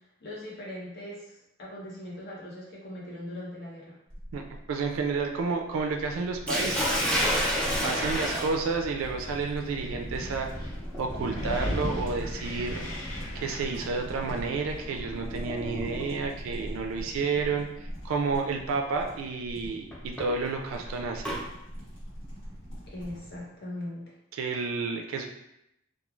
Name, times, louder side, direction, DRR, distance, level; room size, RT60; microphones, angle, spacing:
voice 1, 0.2-4.0 8.1-8.4 22.9-24.1, left 1 dB, 50° left, -5 dB, 0.9 m, -40 dB
sound 1, 4.1-23.4, equal, 65° left, 1.2 m, -42 dB
voice 2, 4.7-6.9 7.8-10.5 11.0-12.8 13.3-17.7 18.0-21.3 24.3-25.3, right 4 dB, 85° right, 3 dB, 0.3 m, -30 dB
Sink (filling or washing), 6.5-16.4 17.5-17.8 18.3-18.4 19.9-21.4, equal, 5° left, 0.5 m, -32 dB
Wind, 8.0-15.3, equal, 85° left, 0.8 m, -38 dB
3.0 x 2.3 x 2.3 m, 0.81 s
head